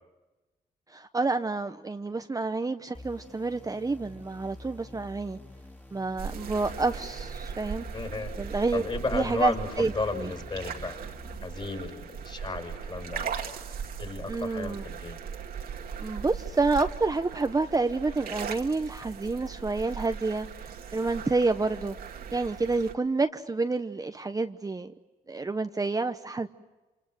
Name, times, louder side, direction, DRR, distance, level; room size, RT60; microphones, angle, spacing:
voice 1, 0.9-5.4 5.9-7.9 8.4-8.8 9.1-10.3 14.3-14.9 16.0-20.5 20.9-22.0 22.3-24.9 25.3-26.5, right 3 dB, 25° right, 8 dB, 0.9 m, -28 dB
sound 1, 2.9-11.4, left 1 dB, 10° left, 2.8 m, -48 dB
sound 2, 6.2-22.9, right 7 dB, 75° right, 2.2 m, -39 dB
voice 2, 7.9-8.3 8.7-11.0 11.4-13.3 14.0-15.2, left 3 dB, 35° left, 5 dB, 5.7 m, -34 dB
27.5 x 27.0 x 7.8 m, 1.1 s
cardioid pair, 75°, 16 cm